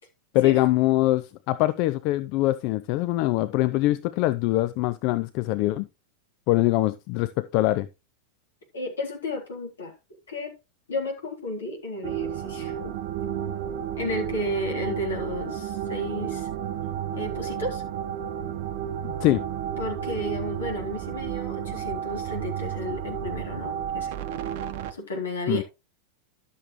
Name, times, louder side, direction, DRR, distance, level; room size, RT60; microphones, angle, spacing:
voice 1, 0.3-5.9 6.5-7.9 19.0-19.4 25.5-25.6, left 17 dB, 45° left, 0.5 m, -23 dB
voice 2, 8.7-9.9 10.3-10.5 10.9-13.0 13.9-16.5 17.1-17.8 19.8-24.1 24.9-25.6, left 1 dB, 65° left, 3.7 m, -32 dB
sound 1, 12.0-24.9, right 9 dB, 50° right, 0.8 m, -32 dB
12.0 x 7.1 x 3.2 m
figure-of-eight pair, 90°, 0 cm